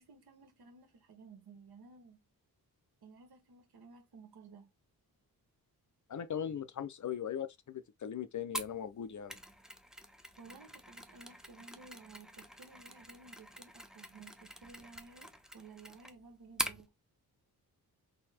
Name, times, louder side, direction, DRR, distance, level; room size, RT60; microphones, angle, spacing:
voice 1, 0.0-2.2 3.0-4.7 10.4-16.9, right 4 dB, 80° right, 1.7 m, -55 dB
voice 2, 6.1-9.4, left 8 dB, 50° left, 0.6 m, -39 dB
Mechanisms, 8.5-16.8, equal, ahead, 0.5 m, -45 dB
4.0 x 2.8 x 4.2 m
wide cardioid pair, 150°, 38 cm